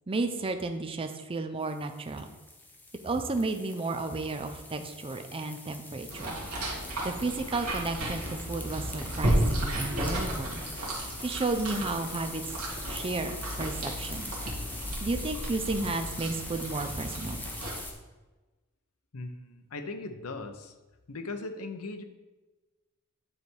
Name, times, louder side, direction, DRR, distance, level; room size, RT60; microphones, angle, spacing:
voice 1, 0.1-2.3 3.0-6.4 7.0-10.6 11.2-12.4 12.9-14.3 15.0-17.4, right 3 dB, 25° right, 7 dB, 0.5 m, -32 dB
sound 1, 1.6-17.9, left 2 dB, 10° left, 0.7 m, -43 dB
sound 2, 6.1-17.8, right 1 dB, 80° right, 1.9 m, -33 dB
voice 2, 19.1-20.7 21.1-22.0, left 3 dB, 80° left, 7 dB, 0.7 m, -38 dB
9.5 x 3.4 x 4.5 m, 1.2 s
head